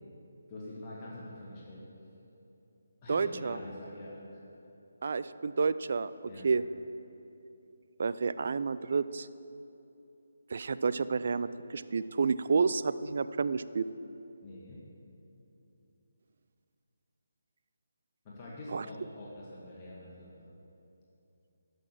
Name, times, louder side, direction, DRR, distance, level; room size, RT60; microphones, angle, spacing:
voice 1, 0.5-1.8 3.0-4.4 6.2-6.5 14.4-14.8 18.2-20.5, left 1 dB, 25° left, -7 dB, 1.9 m, -45 dB
voice 2, 3.1-3.6 5.0-6.1 6.4-6.6 8.0-9.3 10.5-13.8 18.7-18.8, right 5 dB, 55° right, 14 dB, 0.4 m, -30 dB
12.0 x 6.4 x 7.4 m, 2.8 s
figure-of-eight pair, 155°, 0 cm